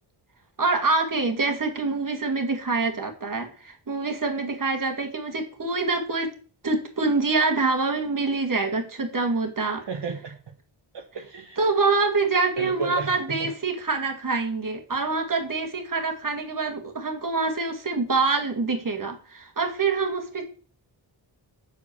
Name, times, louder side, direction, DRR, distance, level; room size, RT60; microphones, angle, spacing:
voice 1, 0.6-6.3 6.6-9.8 11.6-20.5, right 3 dB, 40° right, 5 dB, 2.1 m, -25 dB
voice 2, 9.9-10.4 10.9-11.6 12.6-13.5, right 5 dB, 55° right, 1 dB, 1.3 m, -33 dB
6.6 x 5.0 x 6.9 m, 0.40 s
cardioid pair, 45°, 47 cm